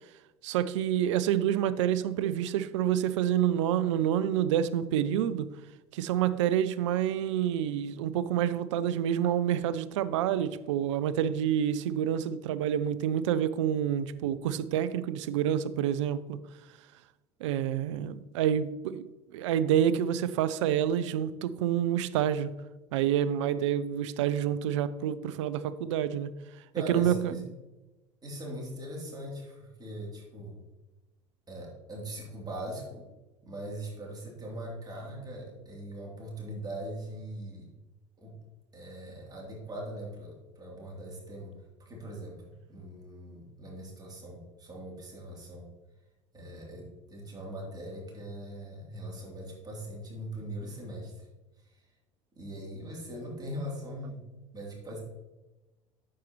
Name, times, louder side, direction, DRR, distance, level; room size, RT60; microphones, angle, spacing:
voice 1, 0.4-5.5 5.9-16.4 17.4-22.5 22.9-26.3 26.9-27.3, right 10 dB, 75° right, 15 dB, 0.5 m, -28 dB
voice 2, 26.7-27.4 28.2-30.6 31.5-33.1 33.4-37.7 38.2-38.4 38.7-45.7 46.3-51.3 51.6-51.8 52.4-54.2 54.5-55.0, right 1 dB, 25° right, -2 dB, 2.9 m, -41 dB
9.2 x 7.3 x 3.0 m, 1.1 s
hypercardioid pair, 70°, 16 cm